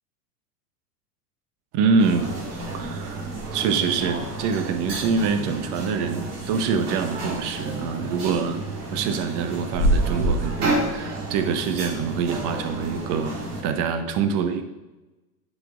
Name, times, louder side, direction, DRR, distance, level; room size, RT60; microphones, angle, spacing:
voice 1, 1.7-2.4 2.7-14.6, right 5 dB, 40° right, 8 dB, 0.8 m, -25 dB
sound 1, 2.0-13.6, right 2 dB, 70° right, 1.9 m, -29 dB
9.7 x 5.1 x 2.5 m, 1.1 s
hypercardioid pair, 100°, 48 cm